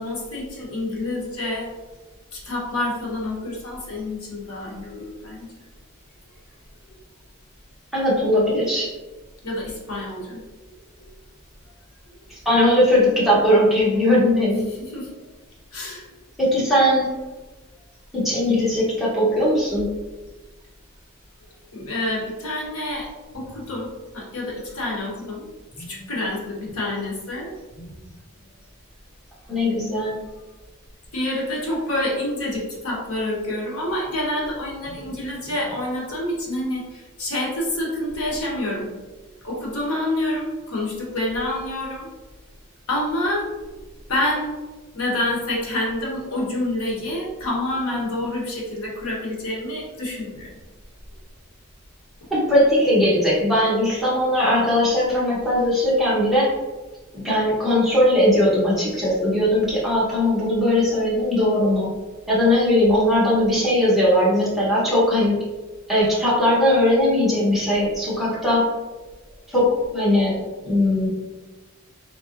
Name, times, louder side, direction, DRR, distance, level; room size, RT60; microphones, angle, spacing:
voice 1, 0.0-1.7 2.3-5.5 9.4-10.4 11.0-11.1 14.9-15.1 15.7-16.1 21.7-23.1 23.3-25.5 25.8-27.9 31.1-38.9 39.4-42.1 42.9-43.5 44.1-44.6 44.9-50.5, left 1 dB, 90° left, -3 dB, 1.1 m, -27 dB
voice 2, 7.9-8.9 12.3-14.6 16.4-17.1 18.1-19.9 29.5-30.1 52.3-56.5 57.2-61.9 62.3-65.4 65.9-68.6 69.5-70.4 70.6-71.1, left 1 dB, ahead, -9 dB, 1.1 m, -19 dB
3.9 x 3.5 x 2.6 m, 1.2 s
head